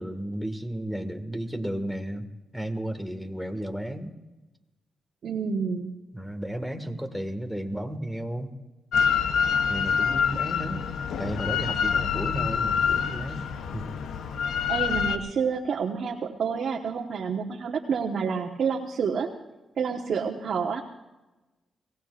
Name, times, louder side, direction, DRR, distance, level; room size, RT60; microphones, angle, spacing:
voice 1, 0.0-2.3 2.5-4.1 6.1-8.5 9.7-10.8 11.2-13.5 13.7-13.9, right 1 dB, ahead, 7 dB, 1.8 m, -33 dB
voice 2, 5.2-5.9 14.7-19.3 19.8-20.8, right 6 dB, 70° right, 1 dB, 1.2 m, -28 dB
Drill, 8.9-15.2, left 7 dB, 85° left, 0.8 m, -26 dB
23.5 x 18.0 x 2.5 m, 1.1 s
cardioid pair, 70°, 0 cm